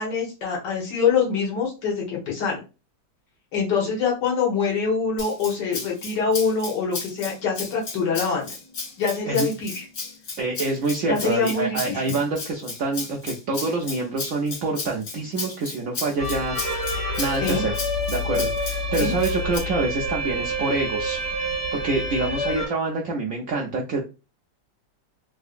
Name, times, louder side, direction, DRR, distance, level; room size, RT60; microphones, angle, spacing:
voice 1, 0.0-2.6 3.5-8.5 9.0-9.8 11.1-12.2 17.4-17.6 19.0-19.1, left 5 dB, 75° left, -2 dB, 1.7 m, -24 dB
Rattle (instrument), 5.2-19.6, left 4 dB, 50° left, 1.0 m, -34 dB
voice 2, 10.4-16.8 17.2-24.0, right 3 dB, 75° right, 0 dB, 0.7 m, -27 dB
sound 1, 16.2-22.7, equal, 30° right, 1.8 m, -27 dB
3.5 x 2.5 x 2.4 m, 0.31 s
omnidirectional pair, 1.9 m